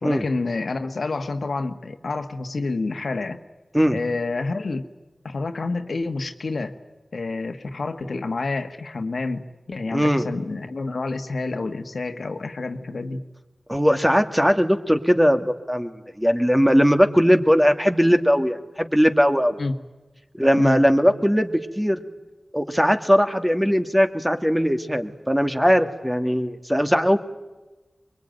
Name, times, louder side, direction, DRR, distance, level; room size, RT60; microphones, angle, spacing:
voice 1, 0.0-3.4 3.9-4.9 5.2-6.8 7.1-13.2 19.6-19.8 20.5-20.8, left 3 dB, 85° left, 7 dB, 1.6 m, -28 dB
voice 2, 9.9-10.2 13.7-19.6 20.4-22.0 22.5-27.2, equal, 5° right, 7 dB, 2.0 m, -19 dB
23.5 x 22.5 x 9.2 m, 1.2 s
wide cardioid pair, 50°, 0 cm